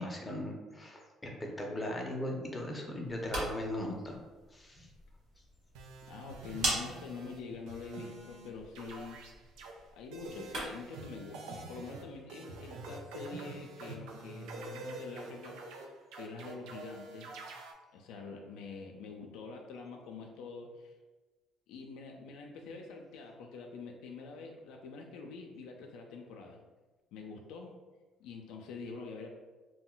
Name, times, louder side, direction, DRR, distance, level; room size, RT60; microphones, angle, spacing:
voice 1, 0.0-4.2 4.5-4.9, left 1 dB, 15° left, 0 dB, 0.6 m, -38 dB
sound 1, 3.0-11.0, right 1 dB, 70° right, 1.2 m, -42 dB
sound 2, 5.7-7.4 7.7-8.5 8.7-9.7 10.1-17.7, right 2 dB, 90° right, 0.4 m, -46 dB
voice 2, 6.1-9.3 9.9-15.6 16.2-17.4 17.9-20.9 21.7-26.6 27.1-27.8 28.2-29.3, left 4 dB, 85° left, 2 dB, 0.3 m, -45 dB
2.2 x 2.1 x 3.8 m, 1.2 s
cardioid pair, 90°, 0 cm